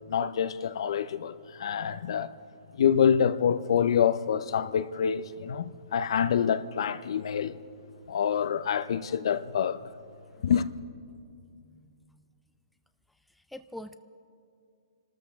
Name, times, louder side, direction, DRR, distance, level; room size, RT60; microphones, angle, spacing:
voice 1, 0.1-2.4 2.8-7.6 8.1-9.9 10.4-10.7, left 8 dB, 65° left, 0.6 m, -26 dB
voice 2, 11.6-12.2 13.3-13.9, left 1 dB, ahead, 0.4 m, -46 dB
27.5 x 13.0 x 3.6 m
hypercardioid pair, 150°, 3 cm